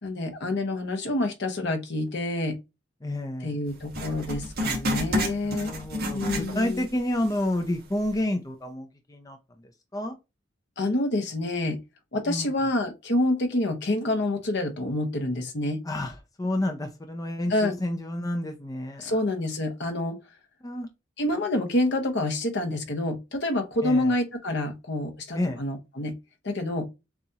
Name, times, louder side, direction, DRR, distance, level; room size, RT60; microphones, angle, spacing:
voice 1, 0.0-2.6 3.4-5.7 6.1-6.8 10.8-11.8 12.1-15.8 17.5-17.7 19.0-20.2 21.2-26.1 26.4-26.9, left 1 dB, 60° left, 1.0 m, -27 dB
voice 2, 3.0-3.6 5.3-10.2 12.3-12.5 15.8-19.2 20.6-20.9 23.8-24.2 25.3-25.6, left 1 dB, 20° left, 0.5 m, -30 dB
Writing, 3.9-6.9 7.2-7.3 8.0-8.1, equal, 50° right, 1.4 m, -30 dB
7.0 x 2.5 x 2.8 m
head